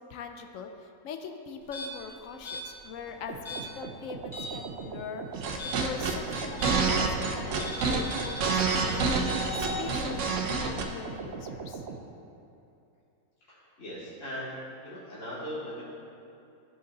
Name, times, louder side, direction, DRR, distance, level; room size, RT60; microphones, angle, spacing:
voice 1, 0.0-5.4 5.8-11.8, left 6 dB, 70° left, 6 dB, 0.8 m, -42 dB
sound 1, 1.6-4.7 5.0-7.0 7.6-9.8, equal, 20° left, 2.5 m, -39 dB
sound 2, 3.3-12.0, right 5 dB, 90° right, 0.5 m, -40 dB
sound 3, 5.3-10.8, right 4 dB, 60° right, 0.8 m, -28 dB
voice 2, 13.5-14.6 14.8-15.8, equal, 45° left, -10 dB, 2.8 m, -39 dB
13.5 x 5.1 x 4.1 m, 2.7 s
omnidirectional pair, 1.9 m